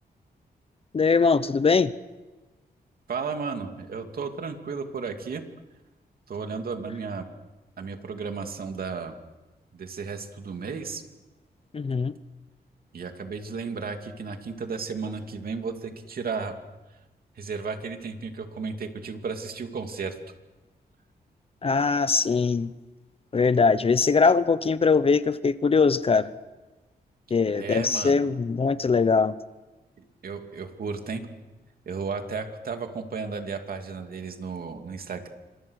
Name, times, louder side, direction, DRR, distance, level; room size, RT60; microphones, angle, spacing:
voice 1, 0.9-1.9 11.7-12.1 21.6-22.7 23.3-26.3 27.3-29.3, left 4 dB, 35° left, 15 dB, 0.8 m, -21 dB
voice 2, 3.1-5.4 6.3-7.3 7.8-9.1 9.7-11.0 12.9-16.5 17.4-20.2 27.5-28.3 30.2-31.3 31.9-35.3, right 5 dB, 65° right, 5 dB, 2.6 m, -34 dB
28.0 x 26.0 x 6.5 m, 1.1 s
wide cardioid pair, 145°, 17 cm